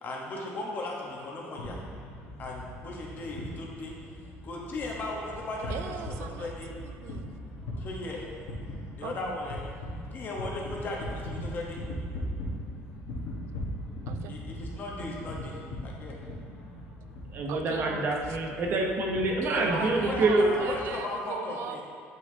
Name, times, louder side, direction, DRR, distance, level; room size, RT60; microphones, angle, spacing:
voice 1, 0.0-1.8 2.4-3.9 4.4-6.7 7.8-8.2 8.9-9.6 10.1-11.8 14.3-15.6 15.8-16.2 19.5-21.8, left 2 dB, 40° left, -2 dB, 1.0 m, -36 dB
sound 1, 1.6-20.9, left 1 dB, 85° left, 1.2 m, -40 dB
voice 2, 5.7-7.3 9.0-9.4 14.1-14.4 17.5-18.1 19.4-21.8, right 9 dB, 65° right, 9 dB, 0.4 m, -39 dB
voice 3, 17.3-20.5, right 2 dB, 40° right, 0 dB, 0.8 m, -26 dB
8.1 x 4.7 x 2.8 m, 2.4 s
cardioid pair, 140°, 5 cm